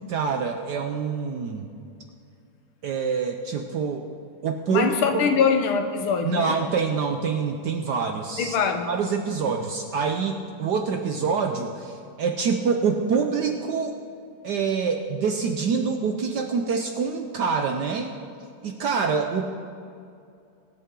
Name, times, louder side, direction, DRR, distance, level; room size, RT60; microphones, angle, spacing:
voice 1, 0.1-1.7 2.8-4.0 4.4-5.2 6.2-8.6 8.9-13.9 14.4-18.1 18.6-19.5, right 5 dB, 65° right, 4 dB, 1.1 m, -26 dB
voice 2, 4.7-6.6 8.4-8.9, left 6 dB, 90° left, 6 dB, 1.9 m, -23 dB
22.5 x 8.4 x 3.7 m, 2.4 s
omnidirectional pair, 2.2 m